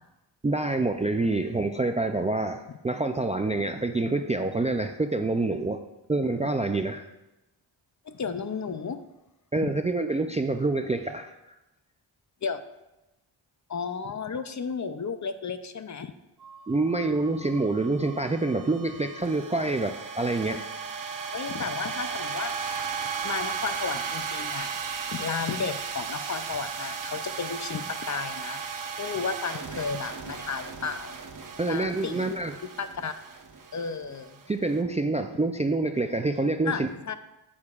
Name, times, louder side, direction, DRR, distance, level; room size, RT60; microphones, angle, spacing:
voice 1, 0.4-7.0 9.5-11.3 16.7-20.7 31.6-32.5 34.5-36.9, right 2 dB, 15° right, 7 dB, 0.3 m, -27 dB
voice 2, 8.0-9.0 9.6-9.7 12.4-12.6 13.7-16.1 21.3-22.5 23.2-24.7 25.1-31.2 31.7-32.3 32.8-33.1 33.7-34.4 36.7-37.1, left 5 dB, 40° left, 10 dB, 0.5 m, -33 dB
sound 1, 16.4-34.7, right 6 dB, 45° right, 0.8 m, -36 dB
8.7 x 8.3 x 2.4 m, 0.97 s
cardioid pair, 70°, 46 cm